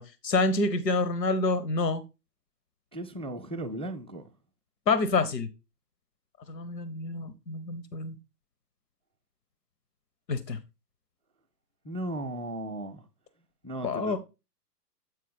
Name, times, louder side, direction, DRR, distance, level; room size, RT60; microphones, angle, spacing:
voice 1, 0.0-2.0 4.9-5.5 6.5-8.1 10.3-10.6 13.8-14.2, left 3 dB, 90° left, 1.0 m, -27 dB
voice 2, 2.9-4.3 11.8-13.1 13.6-14.2, right 1 dB, 20° right, 0.3 m, -36 dB
8.2 x 4.3 x 4.2 m
hypercardioid pair, 130°, 48 cm